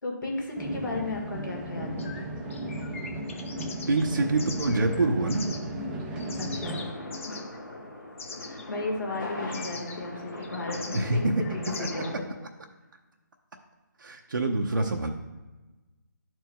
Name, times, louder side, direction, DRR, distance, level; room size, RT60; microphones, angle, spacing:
voice 1, 0.0-2.1 6.4-6.9 7.3-7.6 8.4-12.3, left 2 dB, 75° left, 0 dB, 1.9 m, -34 dB
sound 1, 0.5-6.8, right 1 dB, 5° right, 0.4 m, -35 dB
sound 2, 2.0-5.6 6.0-7.5 8.2-8.6 9.1-12.1, left 4 dB, 40° left, 0.7 m, -42 dB
voice 2, 3.9-5.5 10.9-11.3 11.8-11.9 14.0-15.1, right 2 dB, 80° right, 2 dB, 0.7 m, -26 dB
sound 3, 6.6-12.1, left 1 dB, 90° left, 1.9 m, -39 dB
11.5 x 4.5 x 2.3 m, 1.2 s
hypercardioid pair, 160°, 11 cm